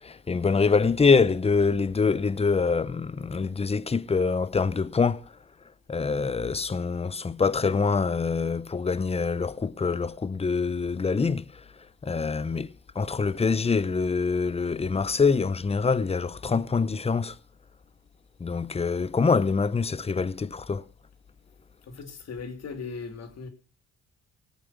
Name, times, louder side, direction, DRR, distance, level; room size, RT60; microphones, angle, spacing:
voice 1, 0.0-5.3 5.9-11.6 12.0-17.4 18.4-20.8, left 4 dB, 20° left, 0.8 m, -25 dB
voice 2, 21.9-23.5, left 4 dB, 60° left, 3.3 m, -38 dB
18.0 x 8.6 x 6.0 m
cardioid pair, 90°, 30 cm